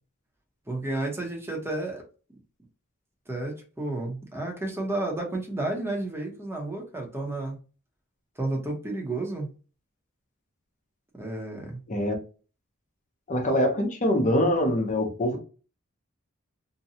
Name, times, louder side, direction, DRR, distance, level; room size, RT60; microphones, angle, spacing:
voice 1, 0.7-2.0 3.3-7.6 8.4-9.5 11.1-11.8, right 2 dB, 10° right, 0.8 m, -31 dB
voice 2, 13.3-15.4, left 1 dB, 35° left, 0.7 m, -24 dB
2.7 x 2.2 x 2.7 m
head